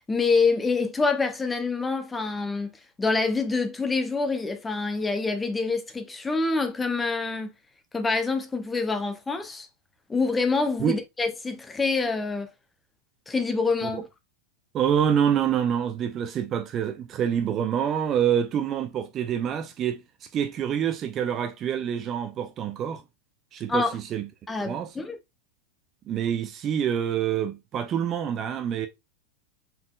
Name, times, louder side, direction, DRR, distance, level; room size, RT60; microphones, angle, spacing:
voice 1, 0.1-7.5 7.9-9.7 10.1-12.5 13.3-14.0 23.7-24.0 24.5-25.2, left 4 dB, 10° left, 0.7 m, -26 dB
voice 2, 14.7-20.0 20.3-23.0 23.5-24.3 24.6-24.9 26.1-28.9, right 9 dB, 30° right, 0.4 m, -26 dB
4.2 x 3.6 x 2.2 m
figure-of-eight pair, 90°, 0 cm